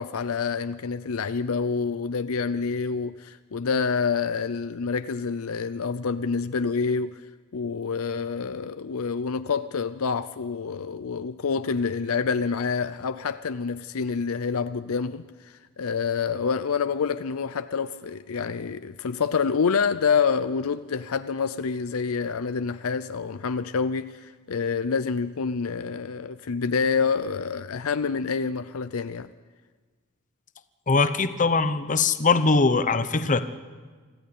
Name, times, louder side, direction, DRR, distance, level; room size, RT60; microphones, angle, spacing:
voice 1, 0.0-7.2 7.5-29.3, left 5 dB, 70° left, 0.5 m, -27 dB
voice 2, 30.9-33.4, left 4 dB, 35° left, 0.9 m, -21 dB
25.5 x 14.5 x 8.6 m
head